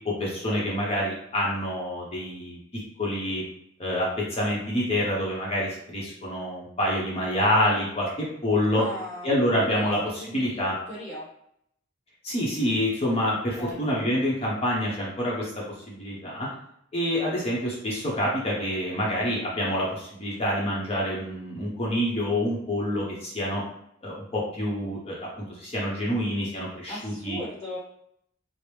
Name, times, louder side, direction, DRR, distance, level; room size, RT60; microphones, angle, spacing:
voice 1, 0.2-2.6 3.0-3.4 3.8-8.1 8.4-8.8 9.2-10.7 12.2-16.5 16.9-23.6 24.0-25.3 25.6-27.4, left 1 dB, 30° left, -4 dB, 0.8 m, -27 dB
voice 2, 8.6-9.3 9.6-9.9 10.2-10.6 10.9-11.3 13.6-13.8 26.9-27.8, left 1 dB, 10° left, -8 dB, 1.1 m, -37 dB
5.0 x 2.0 x 3.1 m, 0.72 s
head